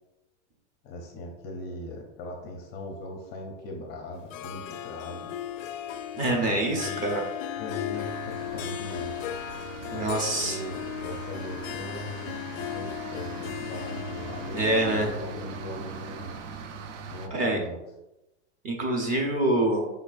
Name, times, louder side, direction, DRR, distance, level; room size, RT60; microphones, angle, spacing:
voice 1, 0.8-5.4 6.3-7.0 7.6-9.2 9.9-16.4 17.1-17.8, left 1 dB, 25° left, 1 dB, 0.5 m, -40 dB
Harp, 4.3-16.5, left 10 dB, 90° left, 0.5 m, -37 dB
voice 2, 6.1-7.2 9.8-10.6 14.5-15.1 17.3-17.6 18.6-19.9, right 1 dB, 20° right, 1 dB, 0.7 m, -25 dB
sound 1, 7.9-17.3, right 6 dB, 70° right, 0.7 m, -41 dB
5.1 x 4.3 x 2.4 m, 0.97 s
supercardioid pair, 150°, 38 cm